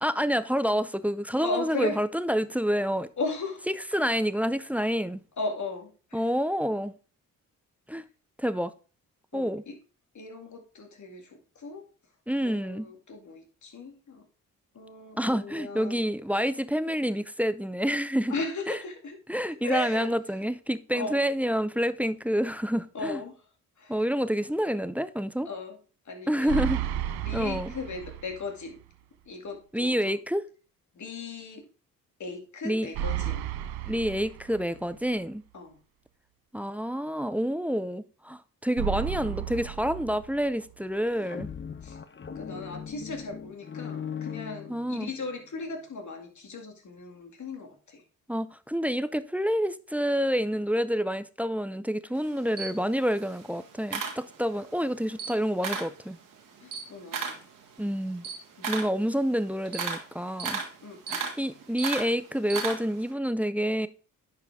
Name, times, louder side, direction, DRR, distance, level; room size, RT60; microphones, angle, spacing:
voice 1, 0.0-3.1 3.9-5.2 6.1-6.9 7.9-8.0 8.4-8.7 9.3-9.6 12.3-12.9 15.2-18.3 18.7-18.8 19.3-23.2 23.9-25.5 26.3-26.8 27.3-27.7 29.7-30.5 32.6-32.9 33.9-35.4 36.5-41.5 44.7-45.1 48.3-56.2 57.8-58.2 58.7-60.6 61.1-63.9, equal, 5° right, 0.5 m, -28 dB
voice 2, 1.4-2.0 3.2-3.6 5.4-6.2 9.3-9.8 10.1-11.8 12.4-14.3 14.7-16.0 18.3-19.2 19.5-20.1 20.9-21.2 22.9-23.4 23.8-24.0 25.4-25.8 26.1-26.7 27.2-28.8 29.3-30.2 30.9-31.7 32.2-33.5 35.5-35.8 41.8-42.0 42.4-48.0 56.6-57.4 58.6-58.7 60.8-61.3, left 3 dB, 50° left, 2.3 m, -37 dB
sound 1, 26.5-28.5 28.8-28.9 32.9-34.9 38.8-40.7, right 11 dB, 85° right, 0.7 m, -33 dB
sound 2, 41.0-45.3, left 7 dB, 30° left, 0.9 m, -39 dB
Camera, 52.2-54.7 55.1-56.0 56.4-63.1, right 5 dB, 60° right, 1.9 m, -35 dB
10.0 x 4.8 x 3.5 m
supercardioid pair, 55°, 36 cm